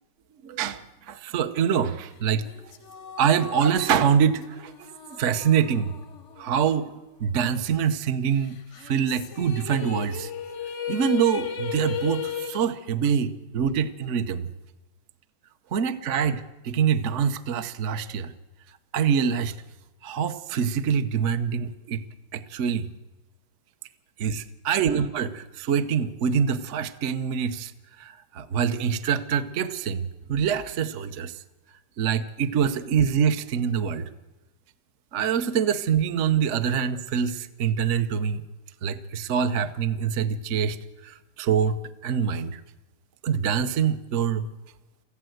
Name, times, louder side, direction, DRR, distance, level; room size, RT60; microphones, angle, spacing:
voice 1, 0.4-2.4 3.2-4.7 5.1-5.9 6.4-6.9 7.2-10.3 10.9-14.5 15.7-18.3 18.9-19.5 20.0-22.0 22.3-22.9 24.2-27.7 28.0-31.3 32.0-34.1 35.1-38.4 38.8-40.8 41.0-42.6 43.2-44.5, right 7 dB, 55° right, 9 dB, 0.8 m, -25 dB
sound 1, 2.4-7.1 7.4-7.5 8.7-12.6, left 7 dB, 60° left, 0.7 m, -36 dB
23.0 x 15.0 x 7.8 m, 1.1 s
omnidirectional pair, 2.3 m